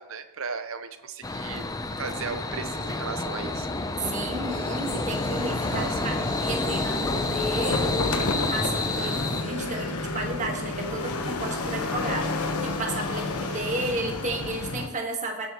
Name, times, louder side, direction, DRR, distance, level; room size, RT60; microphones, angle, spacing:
voice 1, 0.0-1.7 2.0-3.8 5.7-6.0 8.9-9.3, right 5 dB, 65° right, 9 dB, 0.9 m, -36 dB
sound 1, 1.2-9.4, left 2 dB, 15° left, 0.5 m, -29 dB
voice 2, 4.0-9.1 9.4-15.5, right 2 dB, 35° right, 2 dB, 1.5 m, -33 dB
sound 2, 4.5-9.5, left 4 dB, 40° left, 2.0 m, -45 dB
sound 3, 5.1-14.9, left 2 dB, 85° left, 1.2 m, -31 dB
21.0 x 8.1 x 3.0 m, 1.1 s
head